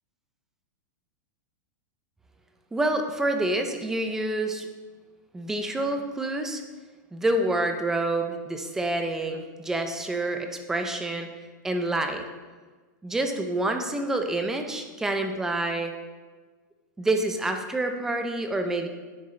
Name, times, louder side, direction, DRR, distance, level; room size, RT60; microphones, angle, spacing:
voice 1, 2.7-4.7 5.3-6.6 7.1-11.3 11.6-12.3 13.0-15.9 17.0-18.9, right 2 dB, 5° right, 5 dB, 0.4 m, -27 dB
9.8 x 7.6 x 3.2 m, 1.4 s
supercardioid pair, 175°, 11 cm